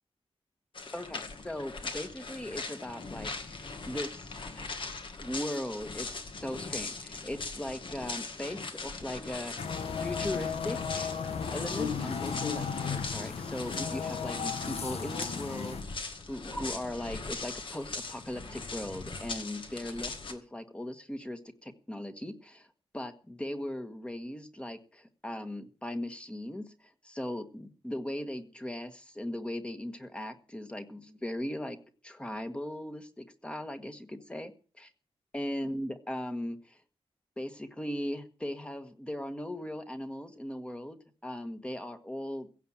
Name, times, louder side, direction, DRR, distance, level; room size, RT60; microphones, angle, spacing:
sound 1, 0.7-20.3, left 3 dB, 55° left, 1.9 m, -40 dB
voice 1, 0.9-4.7 5.2-6.1 6.4-9.7 10.0-11.1 11.5-16.0 16.3-22.7 22.9-31.8 32.0-34.9 35.3-36.8 37.4-42.5, left 1 dB, 10° left, 8 dB, 1.6 m, -38 dB
sound 2, 9.6-15.8, left 6 dB, 85° left, 1.5 m, -35 dB
16.0 x 7.8 x 7.3 m, 0.39 s
wide cardioid pair, 165°, 10 cm